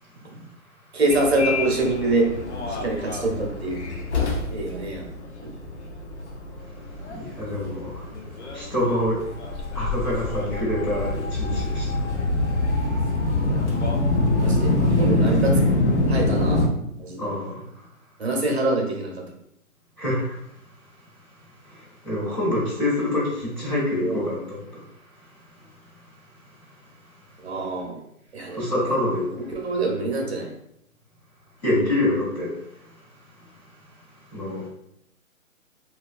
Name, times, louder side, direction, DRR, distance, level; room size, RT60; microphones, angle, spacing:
voice 1, 0.9-2.3 2.7-3.8 4.5-5.1 5.4-5.5 13.4-13.7 14.4-15.8 16.1-16.7 17.0-17.3 18.2-19.2 24.0-24.2 27.4-28.0 28.3-29.0 29.4-30.5, right 2 dB, 50° right, 0 dB, 0.8 m, -25 dB
Subway metro underground, 1.1-16.7, left 2 dB, 55° left, 0.5 m, -25 dB
voice 2, 7.1-8.0 8.5-9.3 9.7-12.0 17.2-17.6 20.0-20.4 21.7-24.8 28.5-29.4 31.6-32.6 34.3-34.6, left 1 dB, 30° left, -9 dB, 1.0 m, -26 dB
3.0 x 2.3 x 2.3 m, 0.78 s
hypercardioid pair, 175°, 42 cm